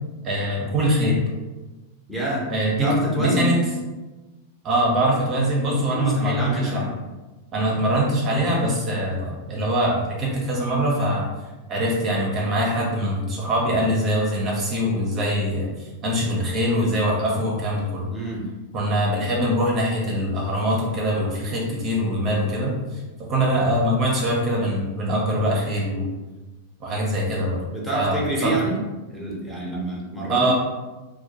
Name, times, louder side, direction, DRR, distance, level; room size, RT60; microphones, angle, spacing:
voice 1, 0.2-1.2 2.5-3.6 4.6-6.9 7.5-11.3 11.7-18.1 18.7-26.1 26.8-27.6 27.9-28.6 30.3-30.5, equal, 35° right, -3 dB, 0.6 m, -23 dB
voice 2, 2.1-2.5 2.8-3.6 5.9-6.9 18.1-18.5 27.7-28.8 29.1-30.5, right 1 dB, 5° left, -5 dB, 0.8 m, -27 dB
2.2 x 2.2 x 2.8 m, 1.2 s
hypercardioid pair, 100°, 0 cm